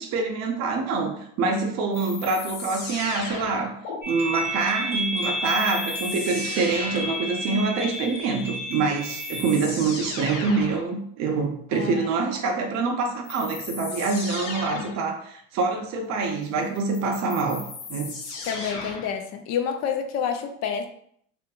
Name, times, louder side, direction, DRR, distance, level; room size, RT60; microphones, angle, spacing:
voice 1, 0.0-3.7 4.1-17.6 17.9-18.2, right 4 dB, 45° right, 3 dB, 0.6 m, -26 dB
sound 1, 1.9-4.0 5.4-7.3 8.5-8.6 9.0-10.9 13.2-15.0 16.7-19.2, left 4 dB, 75° left, 0.8 m, -36 dB
sound 2, 4.0-9.6, equal, 5° right, 0.6 m, -31 dB
voice 2, 11.7-12.1 18.5-20.9, left 7 dB, 45° left, 6 dB, 0.4 m, -28 dB
2.6 x 2.5 x 2.3 m, 0.65 s
hypercardioid pair, 95°, 37 cm